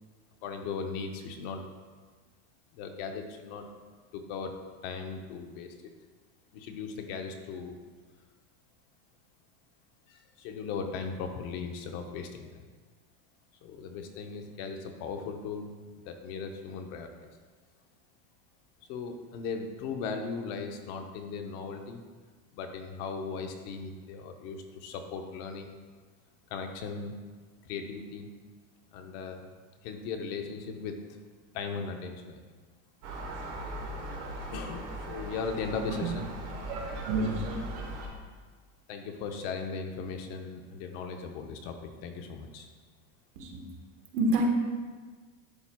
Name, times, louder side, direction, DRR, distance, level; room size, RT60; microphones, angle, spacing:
voice 1, 0.4-1.6 2.7-3.7 4.1-4.5 4.8-5.9 6.5-7.8 10.1-12.6 13.6-15.7 16.0-17.3 18.9-22.0 22.5-25.8 26.5-27.1 27.6-28.3 28.9-29.5 29.8-31.2 31.5-32.4 34.5-36.3 38.9-42.7, left 5 dB, 45° left, 5 dB, 0.7 m, -38 dB
Gull seagull, 33.0-38.1, right 1 dB, 35° right, 1.0 m, -39 dB
voice 2, 36.7-37.6 43.3-43.6 44.1-44.5, right 1 dB, 85° right, 1 dB, 1.4 m, -29 dB
11.5 x 4.3 x 2.2 m, 1.5 s
cardioid pair, 170°, 46 cm